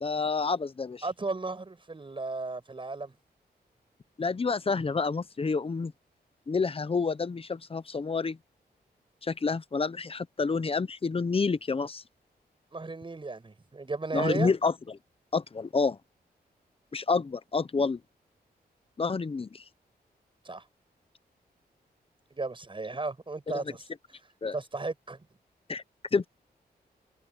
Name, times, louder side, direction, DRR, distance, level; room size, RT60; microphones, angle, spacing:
voice 1, 0.0-1.0 4.2-5.9 6.5-8.4 9.2-12.0 14.1-14.7 15.3-16.0 16.9-18.0 19.0-19.6 23.5-23.6 24.4-24.5 25.7-25.8 26.1-26.3, left 4 dB, 35° left, 0.9 m, -28 dB
voice 2, 1.0-3.2 12.7-14.5 20.4-20.6 22.3-23.8 24.5-25.3, right 3 dB, 30° right, 7.8 m, -34 dB
wide cardioid pair, 95°, 17 cm